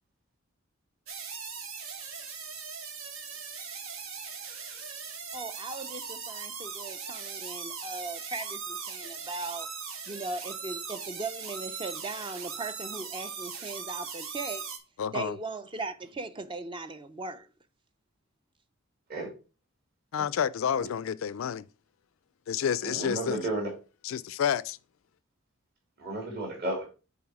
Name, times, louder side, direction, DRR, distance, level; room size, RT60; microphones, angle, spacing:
sound 1, 1.1-14.8, right 6 dB, 85° right, 1.3 m, -39 dB
voice 1, 5.3-9.7 10.1-14.7 15.1-17.5, right 3 dB, 25° right, 0.4 m, -38 dB
voice 2, 15.0-15.4 20.1-21.6 22.5-23.4 24.0-24.8, left 8 dB, 75° left, 0.4 m, -29 dB
voice 3, 22.8-23.7 26.0-26.9, right 2 dB, 50° right, 2.1 m, -33 dB
7.1 x 4.3 x 4.7 m
head